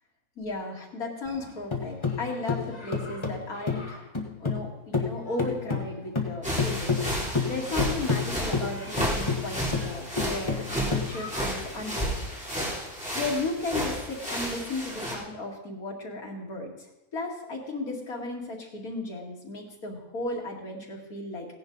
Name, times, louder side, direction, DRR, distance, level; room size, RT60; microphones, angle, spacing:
voice 1, 0.4-4.0 4.4-12.6 13.1-16.7 17.1-21.5, left 2 dB, 80° left, -1 dB, 2.8 m, -35 dB
sound 1, 1.3-4.7 4.9-11.6, left 4 dB, 20° left, 1.5 m, -30 dB
sound 2, 6.4-15.1, equal, 5° right, 3.4 m, -32 dB
17.0 x 10.5 x 4.0 m, 0.95 s
omnidirectional pair, 1.5 m